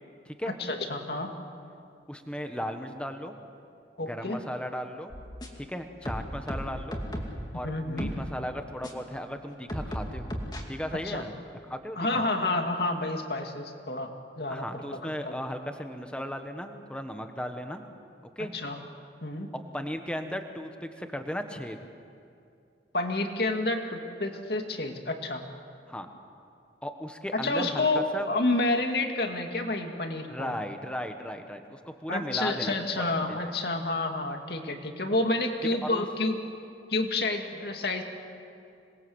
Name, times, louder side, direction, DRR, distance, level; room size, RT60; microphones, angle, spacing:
voice 1, 0.5-1.3 4.0-4.4 7.6-8.1 10.9-11.2 12.0-14.1 14.4-15.4 18.5-18.8 19.2-19.5 22.9-25.4 27.3-30.5 32.1-36.4 36.9-38.0, left 2 dB, 60° left, 4 dB, 2.4 m, -29 dB
voice 2, 2.1-3.4 4.0-5.1 5.6-7.0 7.5-10.3 10.7-11.4 11.6-12.2 14.5-17.8 18.4-18.5 19.7-21.8 25.9-26.1 26.8-28.3 30.3-33.4 35.8-36.0, equal, 5° left, 6 dB, 1.4 m, -36 dB
sound 1, 5.1-5.7 6.1-7.4 8.0-8.2 8.8-8.9 9.7-10.6, equal, 25° left, 2.5 m, -35 dB
27.0 x 21.0 x 8.0 m, 2.5 s
head